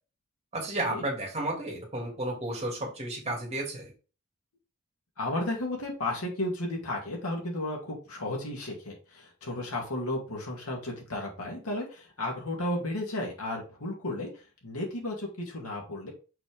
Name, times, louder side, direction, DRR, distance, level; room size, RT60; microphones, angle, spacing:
voice 1, 0.5-3.9, right 1 dB, 30° right, -1 dB, 2.5 m, -32 dB
voice 2, 5.2-14.3 14.6-16.1, left 1 dB, 75° left, -1 dB, 2.4 m, -33 dB
6.0 x 4.5 x 3.6 m, 0.33 s
head